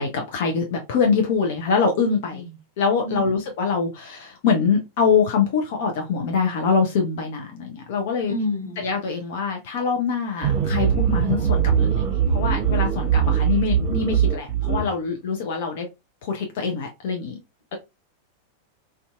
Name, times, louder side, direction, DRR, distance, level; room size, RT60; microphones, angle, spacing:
voice 1, 0.0-2.5 2.8-8.3 8.8-15.9 16.2-17.4, left 5 dB, 55° left, 0.4 m, -24 dB
voice 2, 8.3-8.8, left 1 dB, 80° left, 0.7 m, -28 dB
sound 1, 10.4-14.9, right 8 dB, 35° right, 0.7 m, -21 dB
2.5 x 2.2 x 2.3 m
figure-of-eight pair, 90°, 0 cm